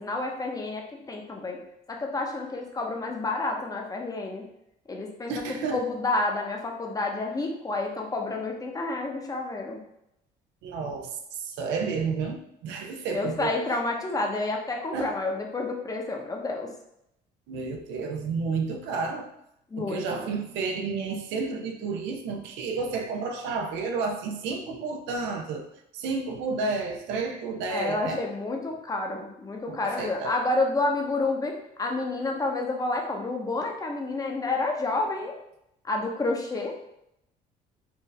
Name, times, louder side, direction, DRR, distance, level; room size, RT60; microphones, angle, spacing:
voice 1, 0.0-1.6 1.9-4.4 4.9-9.8 13.1-16.7 19.7-20.3 27.7-35.3 35.8-36.7, left 2 dB, 20° left, 1 dB, 0.7 m, -29 dB
voice 2, 5.3-5.8 10.6-11.1 11.4-13.5 14.9-15.1 17.5-19.3 19.8-25.7 25.9-28.2 29.7-30.3, right 4 dB, 85° right, 4 dB, 0.6 m, -31 dB
4.6 x 2.6 x 3.2 m, 0.80 s
cardioid pair, 115°, 18 cm